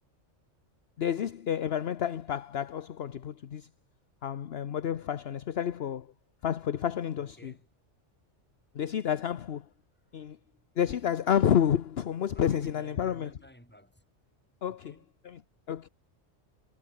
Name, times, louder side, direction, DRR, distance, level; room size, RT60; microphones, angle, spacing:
voice 1, 1.0-3.7 4.2-6.1 6.4-7.5 8.7-9.6 10.1-10.4 10.8-13.3 14.6-14.9 15.2-15.4 15.7-15.9, left 9 dB, 60° left, 1.0 m, -30 dB
voice 2, 7.1-7.7 10.1-10.6 12.3-14.0 14.6-15.1, equal, 10° left, 6.7 m, -54 dB
omnidirectional pair, 1.2 m